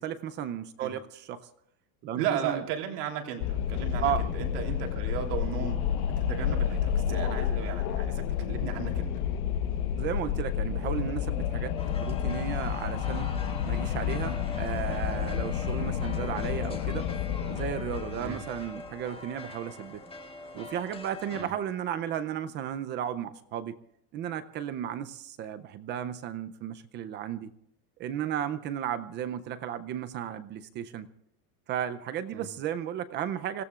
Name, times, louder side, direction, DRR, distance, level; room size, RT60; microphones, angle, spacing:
voice 1, 0.0-1.5 2.0-2.6 4.0-4.3 10.0-11.8 12.0-13.3 13.6-17.1 17.5-20.0 20.5-23.8 24.1-27.5 28.0-31.1 31.7-33.6, right 9 dB, 25° right, 12 dB, 0.5 m, -34 dB
voice 2, 2.1-5.8 6.2-9.1 18.2-18.4 21.3-21.5 32.3-32.5, right 9 dB, 80° right, 3 dB, 3.4 m, -35 dB
Wind, 3.4-18.7, left 9 dB, 65° left, 1.2 m, -30 dB
sound 1, 11.8-21.4, left 2 dB, 10° left, 1.6 m, -43 dB
26.0 x 16.5 x 2.4 m, 0.73 s
supercardioid pair, 160°, 47 cm